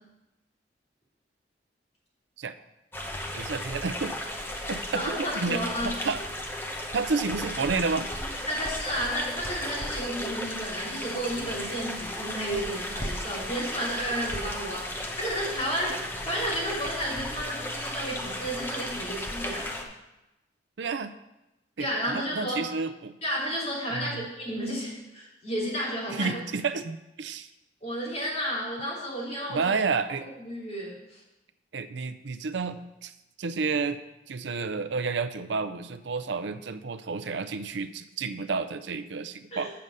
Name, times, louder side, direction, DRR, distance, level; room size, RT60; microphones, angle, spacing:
sound 1, 2.9-19.8, left 1 dB, 10° left, 0.9 m, -35 dB
voice 1, 3.3-4.1 4.7-6.2 6.9-8.1 20.8-21.1 21.8-23.2 23.9-24.3 26.1-27.5 29.5-30.3 31.7-33.1 33.4-34.0 34.3-39.7, right 4 dB, 75° right, 11 dB, 0.5 m, -30 dB
voice 2, 4.9-5.9 8.4-19.8 21.8-22.6 23.2-26.3 27.8-29.7 30.4-31.2 39.5-39.7, equal, 40° left, -6 dB, 3.2 m, -32 dB
7.7 x 5.5 x 6.5 m, 0.96 s
head